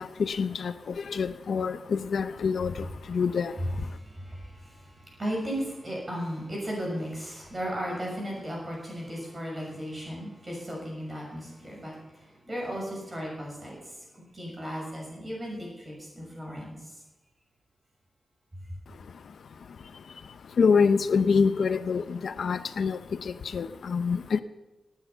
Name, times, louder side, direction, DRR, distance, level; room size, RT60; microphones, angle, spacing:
voice 1, 0.0-3.9 19.9-24.4, left 5 dB, 75° left, 0.6 m, -27 dB
voice 2, 3.9-4.6 5.1-11.9 12.5-13.7 14.3-16.8, equal, 20° right, 6.4 m, -35 dB
19.0 x 9.5 x 5.6 m
wide cardioid pair, 155°, 0 cm